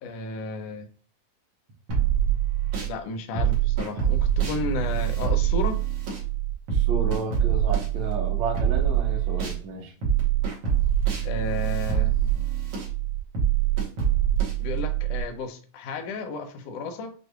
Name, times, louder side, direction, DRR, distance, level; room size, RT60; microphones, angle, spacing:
voice 1, 0.0-0.9 2.8-5.8 11.2-12.1 14.6-17.1, left 3 dB, 75° left, 1.6 m, -33 dB
sound 1, 1.9-2.9 3.4-9.6 10.0-15.2, right 10 dB, 60° right, 1.9 m, -24 dB
voice 2, 6.7-9.9, right 2 dB, 75° right, 1.1 m, -32 dB
6.3 x 2.6 x 2.2 m
omnidirectional pair, 3.4 m